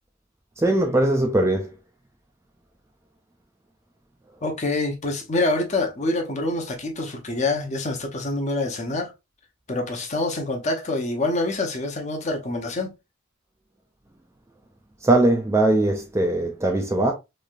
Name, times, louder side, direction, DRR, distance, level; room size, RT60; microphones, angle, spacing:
voice 1, 0.6-1.7 15.0-17.1, right 2 dB, 15° right, 0.3 m, -20 dB
voice 2, 4.4-9.1 9.7-12.9, left 2 dB, 35° left, 0.6 m, -26 dB
3.1 x 2.6 x 2.3 m
head